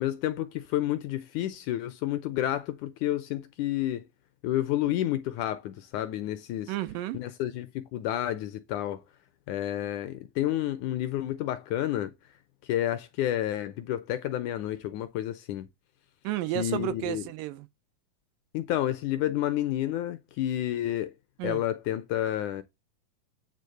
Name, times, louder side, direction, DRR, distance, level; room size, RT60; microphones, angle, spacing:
voice 1, 0.0-4.1 4.4-6.7 7.1-9.0 9.5-12.1 12.7-15.7 16.6-17.2 18.5-21.1 21.4-22.6, left 13 dB, 75° left, 1.9 m, -30 dB
voice 2, 6.7-7.2 16.2-17.7 21.4-21.6, right 14 dB, 80° right, 2.3 m, -32 dB
9.2 x 3.6 x 6.6 m
omnidirectional pair, 4.0 m